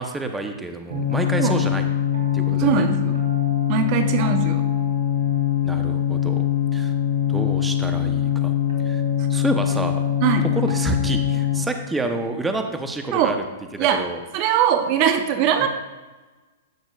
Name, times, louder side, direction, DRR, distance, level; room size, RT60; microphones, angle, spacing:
voice 1, 0.0-1.9 2.3-2.9 5.6-6.3 6.7-6.9 7.3-8.5 8.8-9.0 9.3-10.0 10.4-13.4 13.8-14.2 15.6-15.7, right 2 dB, 10° right, 5 dB, 0.8 m, -28 dB
sound 1, 0.9-11.5, left 10 dB, 80° right, 2.6 m, -22 dB
voice 2, 2.6-3.2 3.7-4.6 10.2-10.5 13.1-13.4 13.8-14.0 14.3-15.7, right 9 dB, 45° right, 8 dB, 0.7 m, -21 dB
14.5 x 6.3 x 2.4 m, 1.2 s
hypercardioid pair, 120°, 0 cm